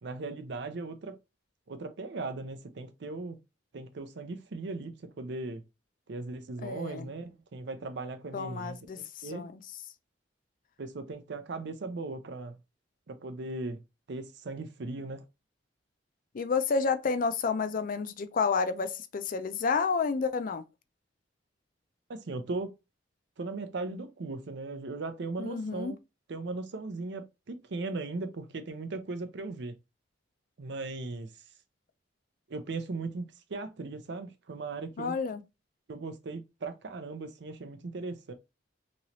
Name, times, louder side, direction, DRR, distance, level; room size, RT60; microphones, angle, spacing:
voice 1, 0.0-1.2 1.7-3.4 3.7-5.6 6.1-9.5 10.8-12.6 13.1-13.8 14.1-15.2 22.1-22.7 23.4-26.0 26.3-29.7 30.6-31.3 32.5-35.2 35.9-38.3, right 3 dB, 65° right, 0.5 m, -38 dB
voice 2, 6.6-7.1 8.3-9.5 16.3-20.6 25.4-25.9 35.0-35.4, left 5 dB, 50° left, 0.4 m, -30 dB
3.1 x 2.9 x 2.6 m
head